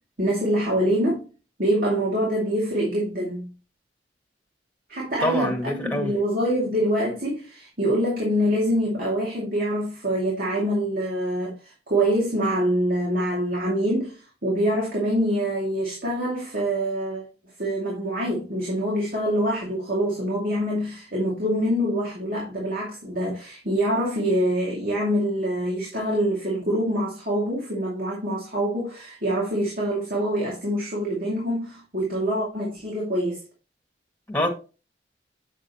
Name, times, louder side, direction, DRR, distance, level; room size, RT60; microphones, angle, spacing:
voice 1, 0.2-1.3 1.6-3.5 4.9-17.2 17.6-33.4, equal, 55° right, 2.4 m, -25 dB
voice 2, 5.2-6.1 34.3-34.5, left 1 dB, 10° left, 1.8 m, -25 dB
7.6 x 6.5 x 3.0 m
head